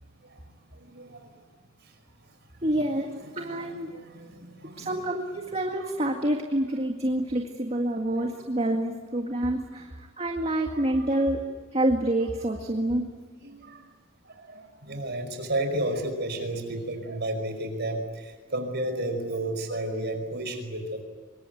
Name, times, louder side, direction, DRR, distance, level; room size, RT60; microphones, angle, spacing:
voice 1, 0.7-1.3 3.3-5.1 5.8-5.9 10.7-11.2 13.4-13.9 14.3-21.0, right 1 dB, 55° right, 6 dB, 5.2 m, -33 dB
voice 2, 2.6-3.9 4.8-11.4 11.7-13.1, right 1 dB, 30° right, 3 dB, 2.0 m, -27 dB
25.5 x 23.0 x 9.3 m, 1.5 s
head